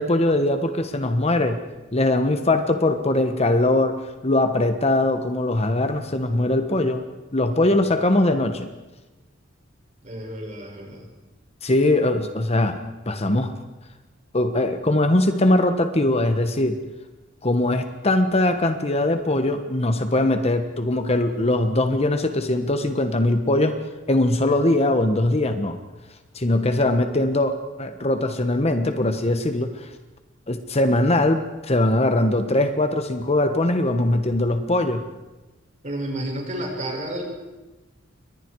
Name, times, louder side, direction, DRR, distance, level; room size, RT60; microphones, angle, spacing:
voice 1, 0.0-1.6 1.9-7.0 7.3-8.7 11.6-13.5 14.3-16.8 17.4-23.7 24.1-25.8 26.3-29.9 30.5-35.0, left 1 dB, 35° left, 7 dB, 1.4 m, -21 dB
voice 2, 7.5-7.8 8.1-8.4 10.0-11.1 35.8-37.2, right 1 dB, 40° right, 0 dB, 6.9 m, -32 dB
29.0 x 24.0 x 4.8 m, 1.1 s
head